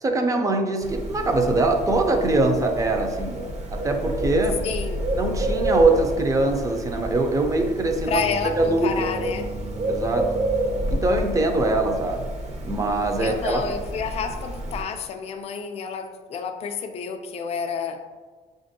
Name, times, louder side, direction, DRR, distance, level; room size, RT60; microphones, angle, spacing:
voice 1, 0.0-4.6 5.2-8.2 8.6-8.9 9.9-10.4 10.9-12.3 12.6-13.6, right 2 dB, 20° right, 4 dB, 0.5 m, -22 dB
Bird, 0.8-14.8, right 1 dB, 40° right, 0.8 m, -29 dB
voice 2, 4.6-5.1 8.1-9.5 13.2-18.0, left 6 dB, 40° left, 5 dB, 0.4 m, -30 dB
5.7 x 2.5 x 2.6 m, 1.4 s
cardioid pair, 110°, 17 cm